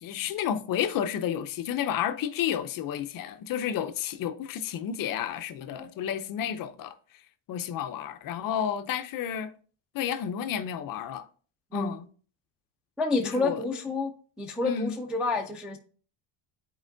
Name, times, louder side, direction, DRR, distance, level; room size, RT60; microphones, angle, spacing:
voice 1, 0.0-7.0 7.5-9.5 9.9-11.2 11.7-12.1 13.2-13.6 14.6-15.0, left 9 dB, 45° left, 0.5 m, -31 dB
voice 2, 13.0-14.1 14.4-15.8, left 3 dB, ahead, 0.3 m, -29 dB
10.5 x 4.5 x 2.6 m
cardioid pair, 135°, 50 cm